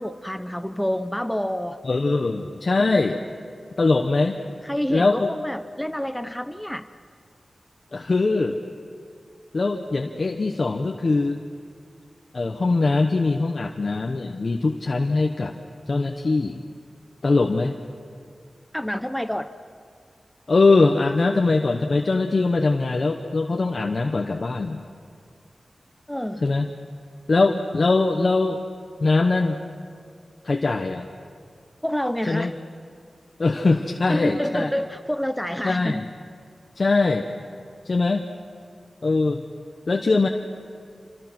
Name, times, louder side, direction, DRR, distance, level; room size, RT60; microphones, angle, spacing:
voice 1, 0.0-1.8 4.6-6.9 18.7-19.5 26.1-26.4 31.8-32.5 34.1-36.0, equal, 5° left, 10 dB, 0.7 m, -28 dB
voice 2, 1.8-3.2 3.8-4.4 4.9-5.3 7.9-8.6 9.5-11.4 12.3-15.6 15.9-16.6 17.2-17.8 20.5-24.8 26.4-26.7 27.3-28.6 29.0-29.6 30.4-31.1 32.3-32.5 33.4-34.7 35.6-36.0 36.8-37.3 37.8-38.2 39.0-39.4 39.9-40.3, left 3 dB, 50° left, 3 dB, 1.1 m, -21 dB
27.5 x 27.0 x 6.2 m, 2.2 s
wide cardioid pair, 110°, 0 cm